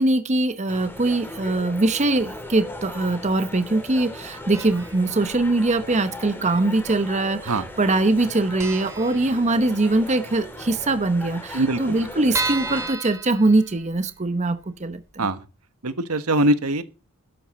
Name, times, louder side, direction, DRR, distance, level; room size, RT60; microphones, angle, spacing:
voice 1, 0.0-15.3, right 2 dB, 30° right, 0.9 m, -22 dB
sound 1, 0.7-12.9, left 1 dB, 10° left, 2.7 m, -38 dB
sound 2, 4.5-5.1 5.3-5.4 6.4-7.1 7.3-7.5 7.8-7.9 8.2-8.3 8.6-9.9 10.3-10.4 10.7-10.8 10.9-11.0 11.5-14.2 14.6-14.7 15.1-15.2, right 3 dB, 15° right, 2.2 m, -32 dB
voice 2, 11.5-12.0 15.2-15.4 15.8-16.8, right 1 dB, 80° right, 1.3 m, -22 dB
12.5 x 11.5 x 4.3 m
head